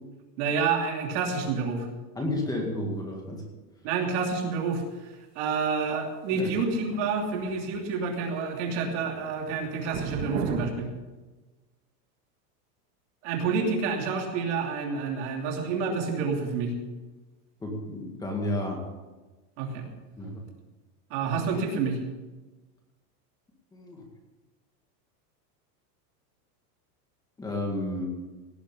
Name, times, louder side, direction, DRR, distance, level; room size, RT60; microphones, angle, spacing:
voice 1, 0.4-1.9 3.8-4.8 5.3-10.9 13.2-16.7 19.6-19.9 21.1-22.0, right 5 dB, 45° right, 1 dB, 2.9 m, -28 dB
voice 2, 2.2-3.4 6.3-6.5 17.6-18.8 20.2-20.4 23.7-24.0 27.4-28.1, left 1 dB, 10° left, 1 dB, 1.9 m, -31 dB
sound 1, 6.5-8.0 8.3-8.7 9.0-10.7, right 6 dB, 70° right, 2.5 m, -35 dB
17.5 x 7.6 x 6.9 m, 1.2 s
supercardioid pair, 170°, 48 cm